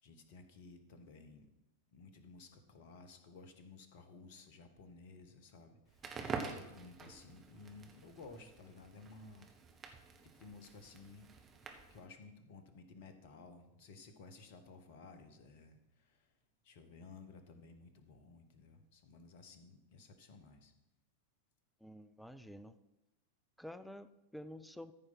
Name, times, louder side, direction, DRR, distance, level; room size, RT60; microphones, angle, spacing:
voice 1, 0.0-1.5 1.9-9.5 10.2-11.3 11.9-16.3 16.6-20.7, left 3 dB, 50° left, 9 dB, 1.3 m, -56 dB
Crackle, 5.9-12.1, right 4 dB, 20° right, 1.3 m, -47 dB
voice 2, 21.8-22.8 23.6-24.9, left 1 dB, ahead, 13 dB, 0.5 m, -50 dB
14.0 x 4.8 x 5.9 m, 0.96 s
figure-of-eight pair, 90°, 0 cm